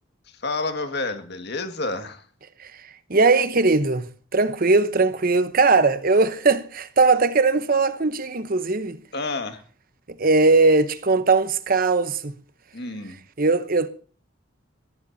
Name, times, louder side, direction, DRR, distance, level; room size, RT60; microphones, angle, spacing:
voice 1, 0.3-2.2 9.1-9.6 12.7-13.2, left 3 dB, 55° left, 1.9 m, -29 dB
voice 2, 3.1-9.0 10.2-12.3 13.4-13.9, right 3 dB, 45° right, 0.9 m, -19 dB
22.0 x 16.5 x 2.8 m
head